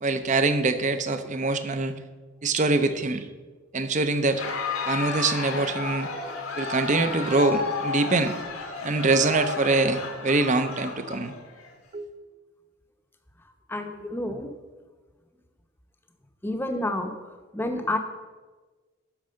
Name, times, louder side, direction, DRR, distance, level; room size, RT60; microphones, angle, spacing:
voice 1, 0.0-1.9 2.4-3.3 3.7-4.4 4.9-6.1 6.6-8.3 8.8-11.3 11.9-12.1, right 3 dB, 35° right, 10 dB, 0.6 m, -24 dB
Crowd, 4.2-11.7, left 4 dB, 75° left, 1.5 m, -33 dB
voice 2, 13.4-14.5 16.4-18.0, left 1 dB, 10° left, 5 dB, 0.8 m, -30 dB
12.0 x 4.8 x 6.4 m, 1.3 s
head